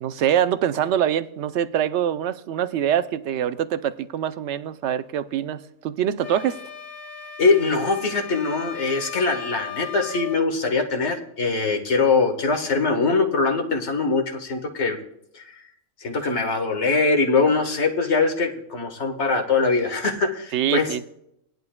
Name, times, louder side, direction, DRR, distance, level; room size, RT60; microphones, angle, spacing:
voice 1, 0.0-6.6 20.5-21.0, right 10 dB, 65° right, 0.8 m, -24 dB
sound 1, 6.2-10.4, left 6 dB, 35° left, 0.9 m, -37 dB
voice 2, 7.4-15.0 15.3-15.6 16.0-20.9, left 4 dB, 55° left, 1.7 m, -22 dB
19.0 x 10.5 x 2.2 m
omnidirectional pair, 1.4 m